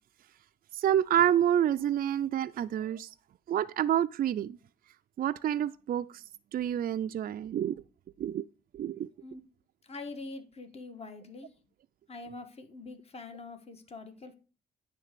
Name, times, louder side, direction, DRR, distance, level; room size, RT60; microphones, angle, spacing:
voice 1, 0.7-3.1 3.5-4.6 5.2-6.2 6.5-7.8 8.2-8.5 8.7-9.1, right 10 dB, 55° right, 0.4 m, -28 dB
voice 2, 9.8-11.5 12.1-14.3, left 3 dB, 35° left, 1.5 m, -44 dB
9.9 x 3.4 x 6.6 m
cardioid pair, 85°, 18 cm